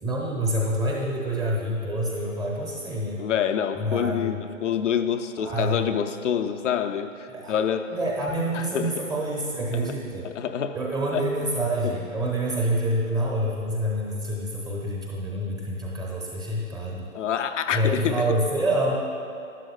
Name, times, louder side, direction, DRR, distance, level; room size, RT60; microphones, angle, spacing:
voice 1, 0.0-3.2 3.8-4.4 5.4-5.9 7.3-7.5 7.9-10.3 10.7-17.1 17.7-19.0, right 1 dB, 10° right, -3 dB, 0.8 m, -27 dB
voice 2, 3.2-8.0 8.5-9.0 10.3-10.8 11.1-11.3 11.8-12.0 17.1-18.3, left 8 dB, 65° left, 8 dB, 0.7 m, -27 dB
11.5 x 10.5 x 2.2 m, 2.8 s
figure-of-eight pair, 130°, 40 cm